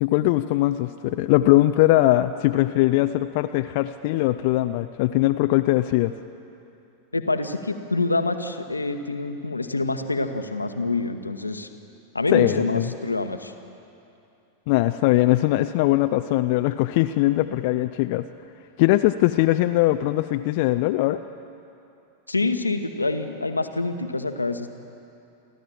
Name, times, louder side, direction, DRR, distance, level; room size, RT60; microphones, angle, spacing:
voice 1, 0.0-6.1 12.3-12.9 14.7-18.2 18.8-21.2, left 16 dB, 50° left, 9 dB, 0.5 m, -21 dB
voice 2, 7.1-11.7 12.1-13.5 22.3-24.7, left 3 dB, 80° left, 7 dB, 1.1 m, -26 dB
29.5 x 12.5 x 7.5 m, 2.7 s
figure-of-eight pair, 90°, 0 cm